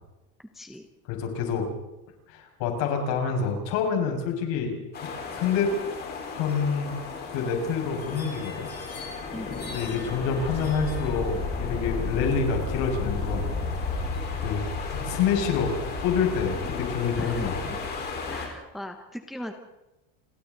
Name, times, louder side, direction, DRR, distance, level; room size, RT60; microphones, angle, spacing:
voice 1, 0.4-0.9 9.3-9.6 17.2-17.5 18.3-19.5, equal, ahead, 5 dB, 1.0 m, -38 dB
voice 2, 1.1-1.7 2.3-4.7 5.0-5.7 6.3-6.9 7.3-8.7 9.7-13.9 14.4-17.6, left 6 dB, 65° left, 2 dB, 6.2 m, -27 dB
sound 1, 4.9-18.5, left 4 dB, 25° left, 4.5 m, -33 dB
29.5 x 23.0 x 4.0 m, 1.0 s
cardioid pair, 180°, 38 cm